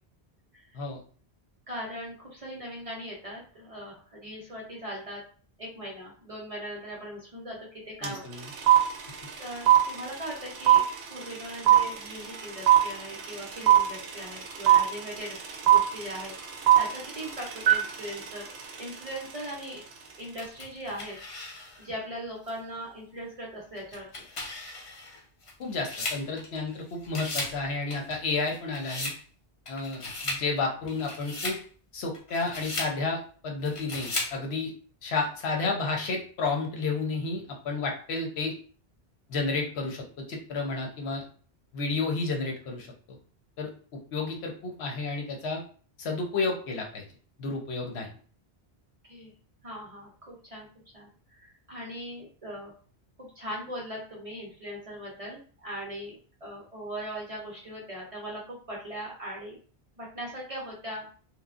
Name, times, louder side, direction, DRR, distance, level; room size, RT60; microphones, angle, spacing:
voice 1, 1.7-5.2 5.6-8.4 9.0-15.4 15.6-16.3 16.8-18.5 18.8-19.8 20.2-24.2 49.1-49.3 49.6-50.7 50.9-51.1 51.4-52.7 53.2-59.6 60.0-61.2, equal, 40° right, -3 dB, 0.6 m, -40 dB
voice 2, 8.0-8.5 25.6-29.1 29.7-31.6 31.9-34.7 35.0-38.5 39.3-41.2 41.7-43.2 43.6-43.7 44.1-45.6 46.0-47.0 47.4-48.1, left 3 dB, 75° left, 1 dB, 1.0 m, -31 dB
sound 1, 8.0-8.1 8.3-19.5, right 11 dB, 75° right, 0.8 m, -21 dB
sound 2, 20.4-21.9 22.5-22.6 23.8-26.8 27.0-27.6 27.9-29.2 29.7-30.5 30.9-31.6 32.1-33.0 33.7-34.4, left 2 dB, 40° left, 0.5 m, -36 dB
3.1 x 2.1 x 2.4 m, 0.43 s
omnidirectional pair, 1.1 m